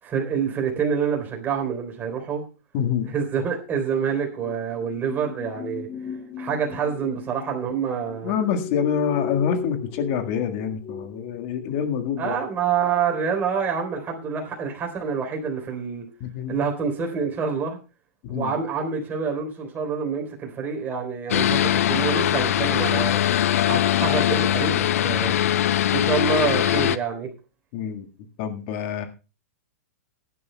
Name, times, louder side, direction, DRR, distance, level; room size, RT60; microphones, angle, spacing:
voice 1, 0.0-2.4 3.1-5.9 6.4-8.3 12.2-16.0 16.5-17.8 18.3-23.2 23.7-25.3 25.9-27.3, right 6 dB, 25° right, 3.8 m, -27 dB
voice 2, 2.7-3.1 8.2-12.4 16.2-16.6 18.2-18.5 27.7-28.1 28.4-29.1, left 8 dB, 45° left, 1.7 m, -26 dB
sound 1, 4.4-14.7 15.0-15.2, left 6 dB, 30° left, 3.2 m, -38 dB
sound 2, 21.3-27.0, left 11 dB, 70° left, 0.6 m, -21 dB
19.0 x 11.0 x 2.3 m
hypercardioid pair, 125°, 8 cm